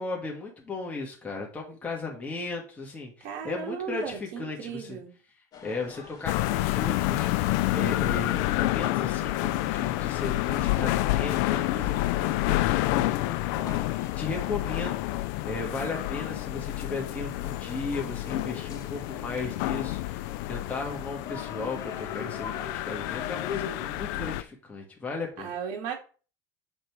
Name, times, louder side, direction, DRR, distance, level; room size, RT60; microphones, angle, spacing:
voice 1, 0.0-5.0 5.6-25.5, left 3 dB, 15° left, -1 dB, 1.6 m, -36 dB
voice 2, 3.2-5.1 25.4-25.9, right 7 dB, 65° right, 1 dB, 2.2 m, -35 dB
sound 1, 5.5-23.9, left 7 dB, 40° left, 2.0 m, -45 dB
sound 2, 6.3-24.4, left 17 dB, 75° left, 0.4 m, -29 dB
6.9 x 4.0 x 4.6 m, 0.38 s
supercardioid pair, 130°, 9 cm